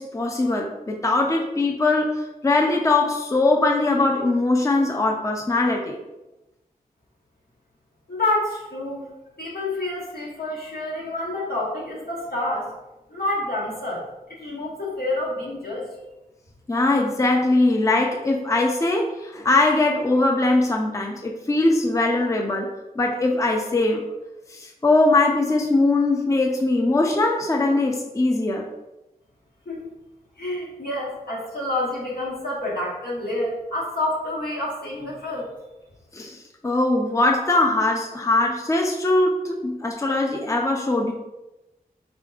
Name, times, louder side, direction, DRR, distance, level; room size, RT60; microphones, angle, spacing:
voice 1, 0.0-6.0 16.7-24.0 24.5-28.7 36.1-41.1, left 2 dB, 20° left, 1 dB, 0.5 m, -21 dB
voice 2, 8.1-9.1 9.4-12.7 13.1-14.0 14.3-15.9 29.6-29.9 30.4-35.5, left 1 dB, 85° left, -5 dB, 1.3 m, -28 dB
4.3 x 3.7 x 2.4 m, 0.99 s
wide cardioid pair, 80°, 15 cm